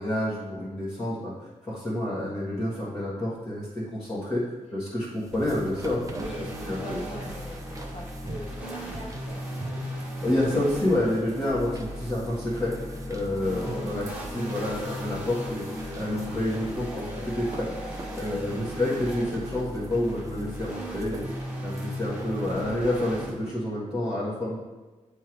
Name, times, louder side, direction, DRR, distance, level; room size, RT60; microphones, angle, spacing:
voice 1, 0.0-1.3 1.6-6.0 6.6-7.0 10.2-24.6, left 1 dB, 25° left, -9 dB, 1.7 m, -29 dB
sound 1, 5.0-23.4, right 2 dB, 25° right, 0.7 m, -45 dB
sound 2, 5.3-23.3, equal, 10° right, 1.6 m, -36 dB
voice 2, 6.0-9.5 12.9-13.2 18.0-18.5, equal, 55° left, -1 dB, 1.5 m, -42 dB
9.2 x 3.5 x 4.6 m, 1.2 s
wide cardioid pair, 145°, 13 cm